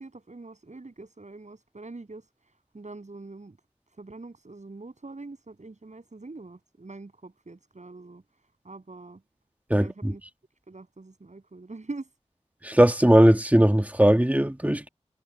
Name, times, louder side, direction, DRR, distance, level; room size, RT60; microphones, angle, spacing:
voice 1, 0.0-3.6 3.9-8.2 8.6-9.2 9.7-10.2 10.7-12.1, right 3 dB, 85° right, 7.7 m, -43 dB
voice 2, 9.7-10.1 12.6-14.9, right 1 dB, 15° right, 1.8 m, -19 dB
wide cardioid pair, 50°, 12 cm